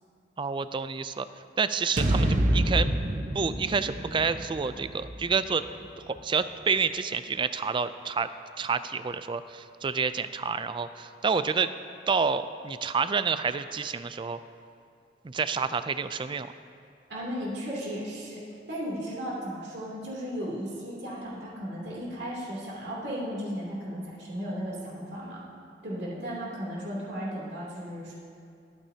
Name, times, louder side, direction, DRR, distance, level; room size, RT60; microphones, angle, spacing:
voice 1, 0.4-1.3 1.6-2.9 3.3-5.6 6.0-8.3 8.6-11.7 12.1-14.4 15.2-16.5, right 5 dB, 30° right, 12 dB, 0.4 m, -28 dB
sound 1, 2.0-6.2, right 1 dB, 50° right, 0.8 m, -28 dB
voice 2, 17.1-18.4 18.7-25.4 25.8-28.2, equal, 70° right, -5 dB, 2.9 m, -35 dB
22.5 x 8.9 x 2.8 m, 2.4 s
head